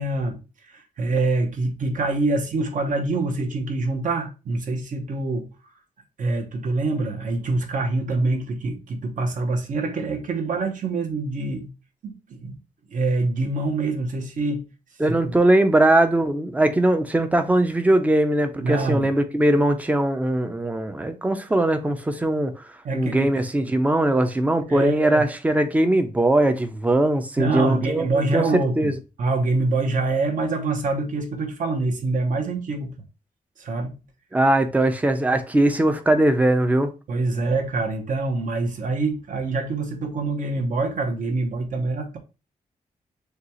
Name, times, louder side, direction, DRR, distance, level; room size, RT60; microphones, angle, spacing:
voice 1, 0.0-5.5 6.2-11.7 12.0-12.6 12.9-14.7 15.2-15.4 18.6-19.1 22.8-23.3 24.7-25.2 27.4-28.9 29.2-32.9 33.6-33.9 37.1-42.2, right 3 dB, 65° right, 1.0 m, -25 dB
voice 2, 15.0-28.9 34.3-36.9, right 1 dB, 10° right, 0.4 m, -20 dB
6.5 x 2.3 x 2.9 m
wide cardioid pair, 180°, 15 cm